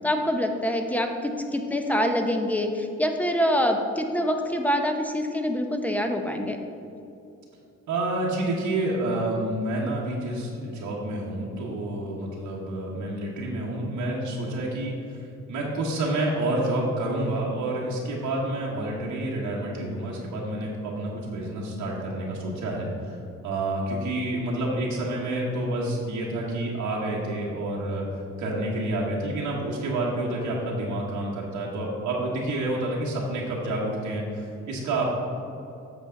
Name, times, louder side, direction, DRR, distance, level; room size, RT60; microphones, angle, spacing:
voice 1, 0.0-6.6, equal, 5° left, 4 dB, 0.7 m, -25 dB
voice 2, 7.9-15.2 15.5-23.1 23.4-28.0 28.4-35.1, right 1 dB, 80° right, -4 dB, 1.3 m, -29 dB
8.2 x 6.3 x 3.8 m, 2.7 s
cardioid pair, 90°, 30 cm